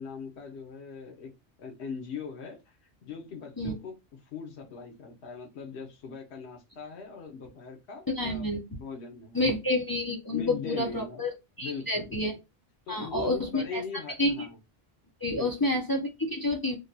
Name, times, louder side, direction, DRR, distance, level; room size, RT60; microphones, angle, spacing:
voice 1, 0.0-1.3 1.6-4.0 4.3-9.6 10.3-11.2 11.6-12.2 12.9-14.6 15.3-15.7, left 5 dB, 90° left, 1.0 m, -40 dB
voice 2, 8.1-8.6 9.3-11.3 11.6-12.3 12.9-13.8 14.2-14.5 15.2-16.8, left 1 dB, 35° left, 0.3 m, -29 dB
3.2 x 2.2 x 2.6 m
omnidirectional pair, 1.1 m